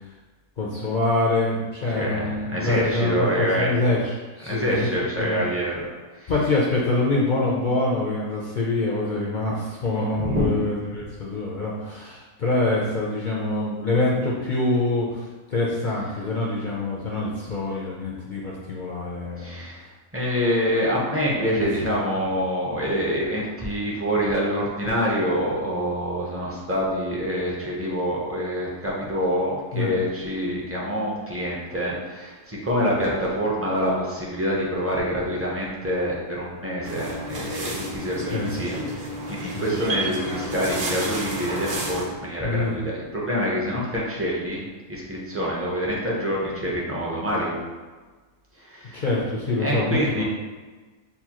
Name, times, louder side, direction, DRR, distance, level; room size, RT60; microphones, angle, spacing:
voice 1, 0.6-5.5 6.3-19.7 22.1-22.3 29.7-29.9 38.3-38.5 39.5-39.8 42.4-42.8 48.9-50.2, left 2 dB, 65° left, -5 dB, 0.4 m, -25 dB
voice 2, 1.9-3.7 4.4-5.9 6.2-6.3 10.2-10.5 19.4-19.8 20.1-44.6 44.9-47.6 48.6-49.0 49.6-50.2, equal, 20° right, -5 dB, 0.4 m, -26 dB
sound 1, 36.8-42.1, right 1 dB, 50° right, 0.8 m, -30 dB
6.7 x 2.3 x 2.9 m, 1.3 s
omnidirectional pair, 1.6 m